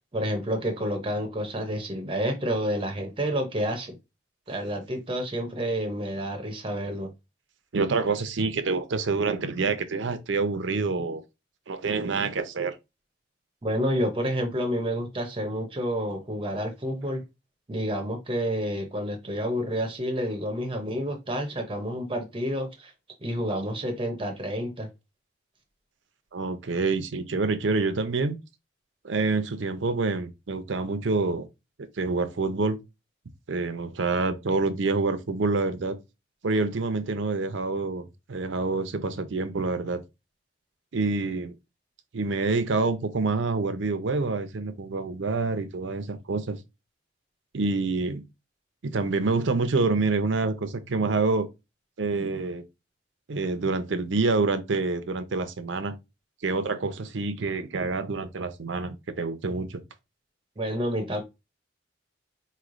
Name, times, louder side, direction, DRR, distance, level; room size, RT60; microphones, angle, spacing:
voice 1, 0.1-4.0 4.5-7.1 13.6-17.2 17.7-22.9 23.2-24.9 60.6-61.2, equal, 30° right, 0.6 m, -29 dB
voice 2, 7.7-11.2 11.7-12.7 26.3-28.4 29.0-31.5 32.0-32.8 33.5-36.0 36.4-40.0 40.9-41.5 42.1-46.6 47.5-48.2 48.8-51.5 52.0-52.6 53.3-55.9 56.4-59.8, right 3 dB, 85° right, 0.6 m, -27 dB
4.3 x 3.1 x 2.5 m
head